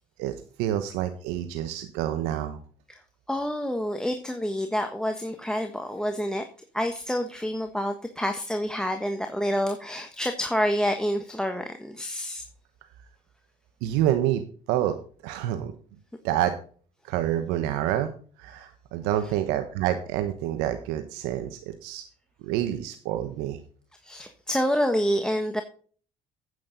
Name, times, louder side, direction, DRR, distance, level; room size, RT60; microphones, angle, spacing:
voice 1, 0.2-2.6 13.8-14.4 14.7-14.9 15.2-15.7 16.2-16.5 17.0-18.1 18.4-22.0 22.4-23.6, right 12 dB, 85° right, 8 dB, 1.1 m, -27 dB
voice 2, 3.3-6.4 6.7-12.4 24.0-25.6, equal, 5° left, 5 dB, 1.3 m, -28 dB
9.6 x 8.6 x 4.0 m, 0.43 s
supercardioid pair, 80°, 16 cm